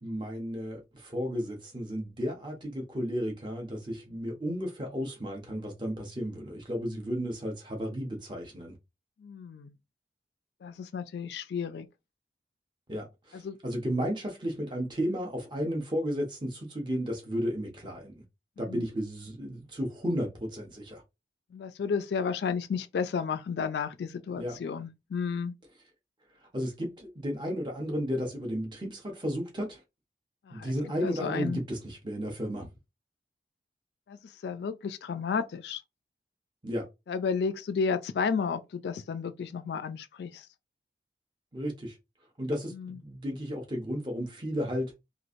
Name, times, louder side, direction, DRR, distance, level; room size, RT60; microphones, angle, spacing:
voice 1, 0.0-8.7 12.9-18.2 18.6-21.0 24.4-24.6 26.5-29.8 30.5-32.7 36.6-36.9 41.5-42.0 42.4-44.9, equal, 25° right, 0.9 m, -33 dB
voice 2, 9.2-9.7 10.6-11.9 13.3-13.6 18.7-18.8 21.5-25.5 30.5-30.7 31.0-31.6 34.1-35.8 37.1-40.5 42.7-43.0, left 5 dB, 75° left, 0.3 m, -32 dB
3.1 x 2.4 x 2.5 m
head